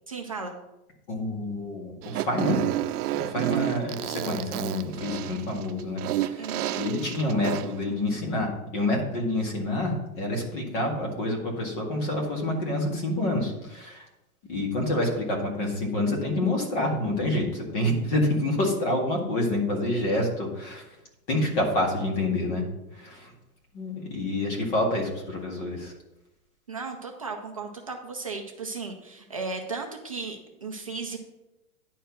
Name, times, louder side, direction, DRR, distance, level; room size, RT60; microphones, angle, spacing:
voice 1, 0.1-0.6 6.4-6.9 26.7-31.2, right 4 dB, 25° right, 2 dB, 0.4 m, -35 dB
voice 2, 1.1-2.6 3.1-14.1 14.5-20.8 21.3-22.6 22.9-23.3 23.7-25.9, left 1 dB, 35° left, 0 dB, 2.0 m, -28 dB
Fart, 2.0-7.8, right 14 dB, 90° right, 0.6 m, -30 dB
10.0 x 4.5 x 5.9 m, 0.93 s
supercardioid pair, 175°, 44 cm